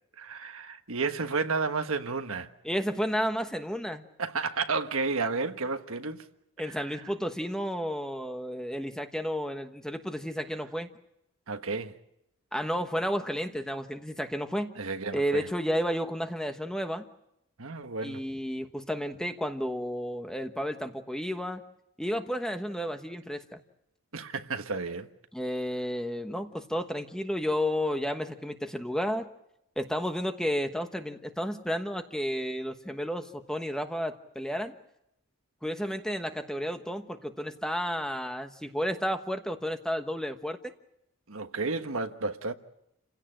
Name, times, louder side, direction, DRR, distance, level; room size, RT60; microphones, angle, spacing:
voice 1, 0.2-2.5 4.2-6.2 6.6-6.8 11.5-11.9 14.8-15.5 17.6-18.2 24.1-25.1 41.3-42.5, right 4 dB, 70° right, 1.4 m, -32 dB
voice 2, 2.6-4.0 6.6-10.9 12.5-14.7 15.1-17.0 18.0-21.6 22.0-23.6 25.3-29.3 29.8-34.7 35.6-40.7, equal, 5° left, 1.2 m, -32 dB
29.5 x 16.5 x 8.9 m
head